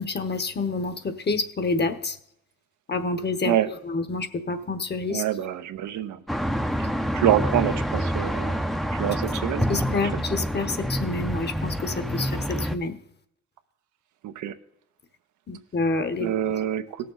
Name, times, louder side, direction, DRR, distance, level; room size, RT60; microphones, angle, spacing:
voice 1, 0.0-2.2 2.9-3.6 3.9-5.2 9.7-13.0 15.5-16.3, left 3 dB, 35° left, 11 dB, 1.1 m, -28 dB
voice 2, 5.1-6.2 7.1-8.6 8.9-9.8 10.0-10.2 14.2-14.5 16.2-16.8, right 11 dB, 80° right, 9 dB, 0.9 m, -26 dB
sound 1, 6.3-12.8, equal, ahead, 0.7 m, -27 dB
17.0 x 6.8 x 3.9 m, 0.75 s
cardioid pair, 90°, 30 cm